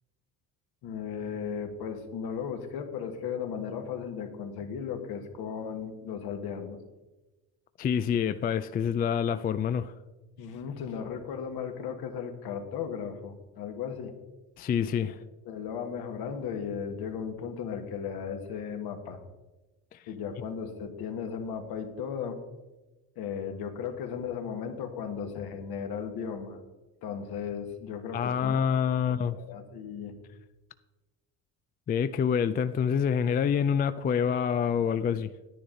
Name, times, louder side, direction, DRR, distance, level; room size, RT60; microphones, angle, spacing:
voice 1, 0.8-6.8 10.4-14.1 15.0-15.1 15.4-19.2 20.1-22.4 23.1-26.6 27.0-28.6 29.1-30.2, left 7 dB, 65° left, 1.6 m, -36 dB
voice 2, 7.8-9.9 14.6-15.2 28.1-29.4 31.9-35.3, left 7 dB, 25° left, 0.3 m, -27 dB
10.0 x 9.8 x 3.8 m
supercardioid pair, 80°, 41 cm